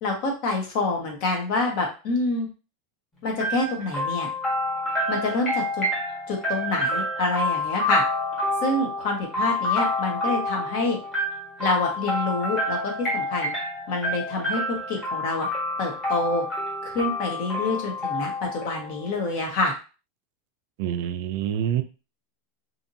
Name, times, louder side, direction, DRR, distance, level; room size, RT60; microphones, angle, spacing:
voice 1, 0.0-2.5 3.2-4.3 5.1-5.9 6.3-8.0 8.6-11.0 11.6-13.5 13.9-15.5 15.8-16.4 16.8-19.7, left 2 dB, 50° left, 1 dB, 1.1 m, -27 dB
sound 1, 3.4-19.2, left 1 dB, 15° left, 1.4 m, -28 dB
voice 2, 20.8-21.8, right 10 dB, 55° right, 9 dB, 0.4 m, -26 dB
2.8 x 2.6 x 2.7 m, 0.33 s
supercardioid pair, 160°, 0 cm